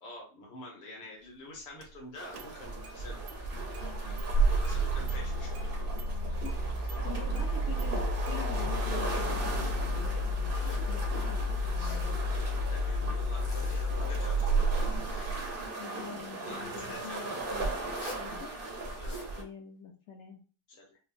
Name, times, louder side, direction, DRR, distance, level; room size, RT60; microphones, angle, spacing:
voice 1, 0.0-3.2 3.7-4.1 4.6-5.6 7.0-7.4 12.7-15.3 16.4-17.2 17.9-18.6 19.0-19.4 20.7-21.0, left 2 dB, 85° left, -2 dB, 1.6 m, -48 dB
Engine starting, 1.8-1.9 2.3-3.0 3.3-3.4 3.7-15.7, right 1 dB, 75° right, 1.1 m, -31 dB
sound 1, 2.1-19.4, right 2 dB, 50° right, 0.6 m, -39 dB
voice 2, 3.8-4.2 6.1-10.5 10.8-12.3 15.8-18.5 19.4-20.4, left 7 dB, 70° left, 3 dB, 0.7 m, -46 dB
Zipper (clothing), 10.4-10.9 11.6-12.1 13.2-13.9 14.5-15.5 16.6-17.2 17.9-18.3 18.8-19.3, left 1 dB, 25° left, 0.8 m, -48 dB
4.4 x 2.1 x 2.5 m, 0.37 s
omnidirectional pair, 1.8 m